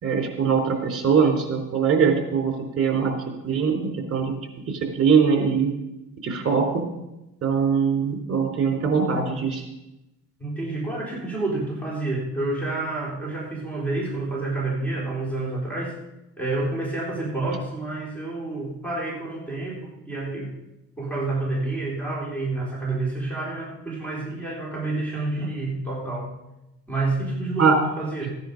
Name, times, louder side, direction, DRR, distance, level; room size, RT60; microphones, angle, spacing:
voice 1, 0.0-3.1 3.4-4.3 4.7-5.7 6.2-6.8 7.4-9.7 27.6-27.8, right 6 dB, 45° right, 3 dB, 3.5 m, -22 dB
voice 2, 10.4-16.0 16.4-20.5 21.0-26.3 26.9-28.4, right 2 dB, 5° left, -4 dB, 3.5 m, -29 dB
15.0 x 10.0 x 5.2 m, 0.93 s
cardioid pair, 120°, 32 cm